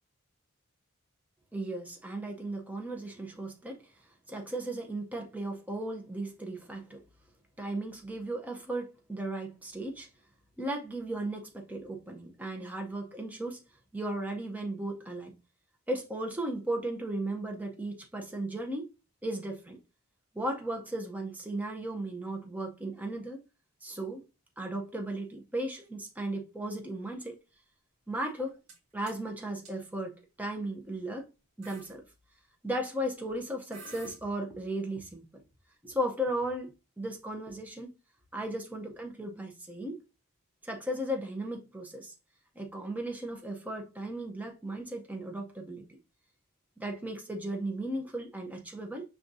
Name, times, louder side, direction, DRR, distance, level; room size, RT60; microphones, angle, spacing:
voice 1, 1.5-3.8 4.3-7.0 7.6-10.1 10.6-13.6 13.9-15.3 15.9-18.9 19.2-19.8 20.3-23.4 23.8-24.2 24.6-27.4 28.1-28.6 28.9-31.3 31.6-32.0 32.6-35.4 35.8-37.9 38.3-40.0 40.6-42.1 42.6-46.0 46.8-49.0, right 1 dB, 5° right, 0.6 m, -36 dB
sound 1, 28.3-28.8 29.1-29.3 29.7-29.8 30.6-30.8 31.2-31.3 31.6-31.9 33.3-33.4 33.7-34.2, right 3 dB, 65° right, 1.4 m, -49 dB
5.2 x 3.5 x 2.6 m
head